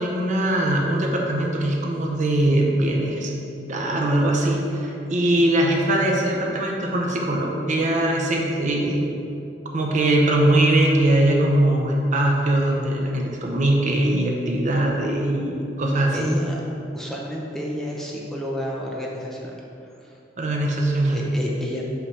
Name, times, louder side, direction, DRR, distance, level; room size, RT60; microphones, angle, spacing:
voice 1, 0.0-3.3 3.7-9.1 9.7-16.2 20.4-21.2, right 1 dB, 45° right, 0 dB, 0.7 m, -21 dB
voice 2, 16.1-16.6 16.9-19.5 20.0-20.2 21.1-21.8, equal, ahead, -3 dB, 0.5 m, -30 dB
5.7 x 3.3 x 5.5 m, 2.7 s
head